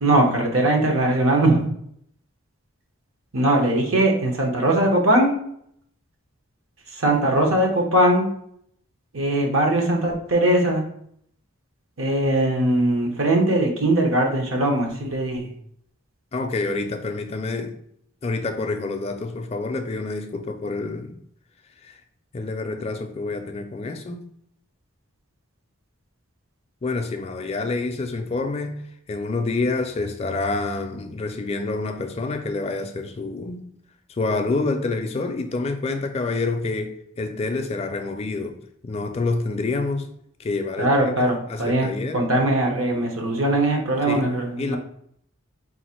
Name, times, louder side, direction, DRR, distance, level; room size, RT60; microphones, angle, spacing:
voice 1, 0.0-1.7 3.3-5.3 6.9-8.2 9.1-10.8 12.0-15.5 40.8-44.8, right 1 dB, 75° right, 1.0 m, -20 dB
voice 2, 16.3-17.8 18.2-21.2 21.8-22.0 22.3-24.2 26.8-33.6 34.2-40.1 40.4-42.2 44.0-44.3 44.6-44.8, left 3 dB, 30° left, 0.4 m, -27 dB
4.1 x 2.5 x 4.3 m
head